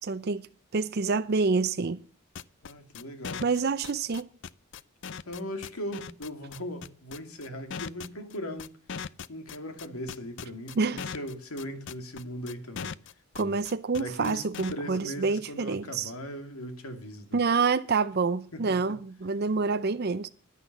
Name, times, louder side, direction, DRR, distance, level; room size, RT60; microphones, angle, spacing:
voice 1, 0.0-0.5 0.7-2.0 3.4-4.3 10.8-11.0 13.4-16.1 17.3-20.3, right 4 dB, 45° right, 0.5 m, -27 dB
sound 1, 2.4-14.7, left 6 dB, 55° left, 0.5 m, -39 dB
voice 2, 2.6-3.4 5.3-12.9 13.4-13.6 13.9-17.4 18.5-19.0 19.5-19.6, equal, 90° left, 2.5 m, -39 dB
11.0 x 10.0 x 6.9 m
head